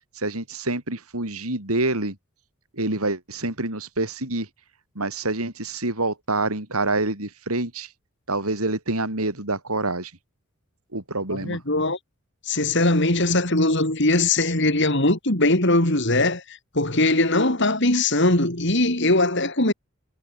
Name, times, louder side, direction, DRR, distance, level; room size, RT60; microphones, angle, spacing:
voice 1, 0.1-2.2 2.7-4.5 5.0-7.9 8.3-10.1 10.9-11.6, right 2 dB, 80° right, 5.3 m, -27 dB
voice 2, 11.3-12.0 12.5-19.7, left 2 dB, 55° left, 4.2 m, -21 dB
head